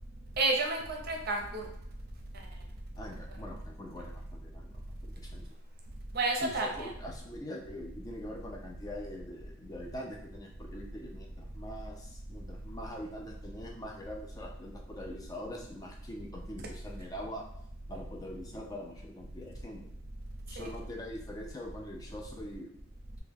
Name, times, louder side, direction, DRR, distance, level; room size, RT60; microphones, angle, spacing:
voice 1, 0.4-1.6 6.1-6.9 20.6-20.7, right 3 dB, 50° right, 1 dB, 0.6 m, -30 dB
voice 2, 3.0-5.5 6.4-17.4 17.9-19.9 20.5-22.7, left 1 dB, 20° left, 0 dB, 0.4 m, -43 dB
2.9 x 2.2 x 3.4 m, 0.75 s
head